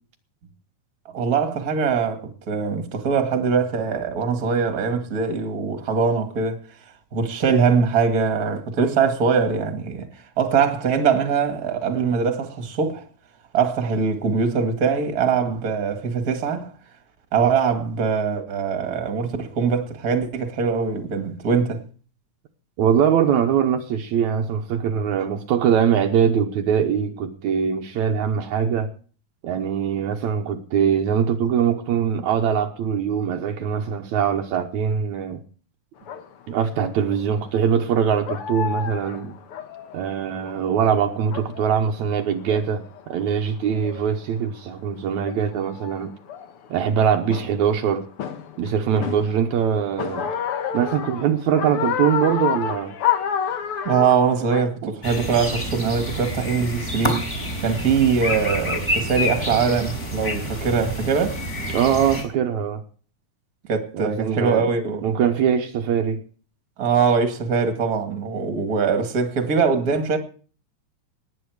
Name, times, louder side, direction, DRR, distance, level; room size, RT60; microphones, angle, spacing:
voice 1, 1.1-6.6 7.1-10.1 10.4-13.0 13.5-16.7 17.3-21.8 53.8-57.2 57.6-61.4 63.7-65.1 66.8-70.2, right 5 dB, 35° right, 2.1 m, -22 dB
voice 2, 22.8-28.9 29.4-35.4 36.5-39.4 39.9-46.1 46.7-48.0 48.6-50.3 50.7-53.0 54.8-54.9 61.7-62.8 63.9-64.7 65.0-66.2, right 8 dB, 75° right, 2.3 m, -22 dB
sound 1, 36.1-36.2 37.1-37.4 37.8-37.9 38.2-40.8 41.1-41.8 42.2-43.0 43.7-44.1 44.9-45.0 45.2-46.9 47.3-47.7 48.2-49.6 50.0-54.6, left 8 dB, 55° left, 1.8 m, -29 dB
sound 2, 55.0-62.2, equal, 20° left, 4.6 m, -28 dB
19.0 x 8.8 x 4.9 m
omnidirectional pair, 3.5 m